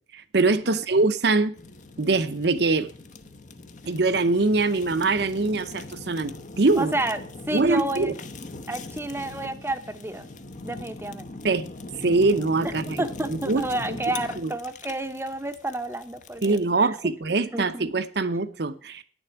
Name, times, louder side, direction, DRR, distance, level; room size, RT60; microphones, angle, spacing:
voice 1, 0.1-1.5 2.0-2.9 3.9-6.9 7.5-8.1 11.4-11.7 12.0-13.6 13.9-14.0 14.4-14.5 16.4-19.0, right 3 dB, 65° right, 0.8 m, -23 dB
Fire, 1.6-16.7, left 2 dB, 45° left, 0.8 m, -41 dB
voice 2, 6.8-7.2 7.5-8.1 8.7-10.3 10.6-11.3 13.0-16.9 17.3-17.8, right 2 dB, 15° right, 0.7 m, -30 dB
9.6 x 7.1 x 8.0 m
head